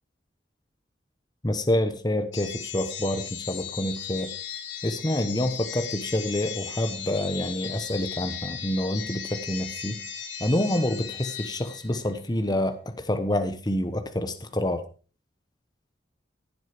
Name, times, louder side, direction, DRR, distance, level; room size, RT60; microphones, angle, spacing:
voice 1, 1.4-4.3 4.8-10.0 10.4-14.8, left 1 dB, 20° left, 8 dB, 1.1 m, -27 dB
sound 1, 2.3-12.2, left 8 dB, 70° left, 3.5 m, -37 dB
15.5 x 7.7 x 5.0 m, 0.37 s
head